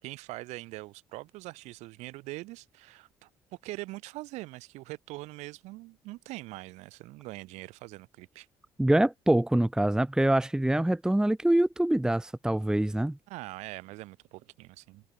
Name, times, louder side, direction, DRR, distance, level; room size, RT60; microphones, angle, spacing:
voice 1, 0.0-3.3 3.6-8.5 13.3-15.0, right 20 dB, 65° right, 5.6 m, -42 dB
voice 2, 8.8-13.2, right 1 dB, 5° right, 0.8 m, -25 dB
figure-of-eight pair, 50°, 12 cm